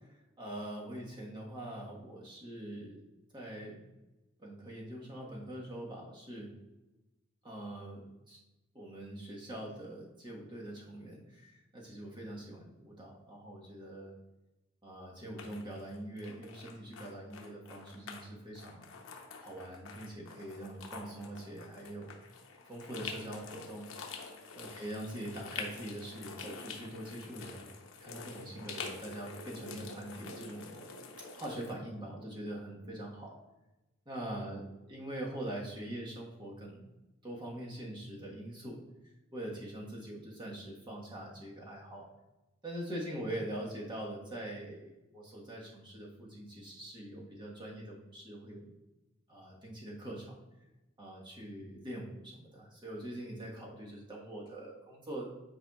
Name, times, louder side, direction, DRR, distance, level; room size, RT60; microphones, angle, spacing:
voice 1, 0.4-3.1 3.3-3.8 4.4-6.5 7.4-8.4 8.7-14.1 14.8-18.9 19.4-22.2 22.6-23.8 24.5-30.8 31.4-33.3 34.0-36.9 37.2-38.8 39.3-42.1 42.6-48.7 49.3-50.4 51.0-55.3, right 1 dB, 20° right, -3 dB, 1.3 m, -43 dB
sound 1, 15.4-18.3 18.6-31.7, left 4 dB, 70° left, 0.9 m, -47 dB
8.7 x 4.8 x 2.4 m, 1.0 s
head